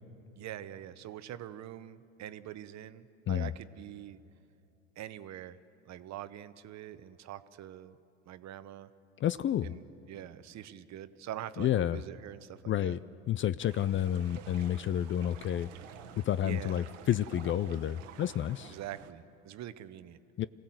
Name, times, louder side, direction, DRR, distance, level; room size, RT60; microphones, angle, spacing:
voice 1, 0.4-4.2 5.0-5.6 5.8-8.0 8.2-8.9 9.6-13.0 13.8-14.0 16.4-16.9 18.7-20.2, right 12 dB, 45° right, 13 dB, 1.0 m, -44 dB
voice 2, 9.2-9.7 11.6-12.0 12.7-13.0 13.3-15.7 16.3-18.7 20.4-20.5, left 11 dB, 35° left, 17 dB, 0.5 m, -30 dB
sound 1, 13.7-19.1, right 9 dB, 80° right, 1.3 m, -50 dB
27.0 x 17.0 x 7.8 m, 2.8 s
hypercardioid pair, 80°, 37 cm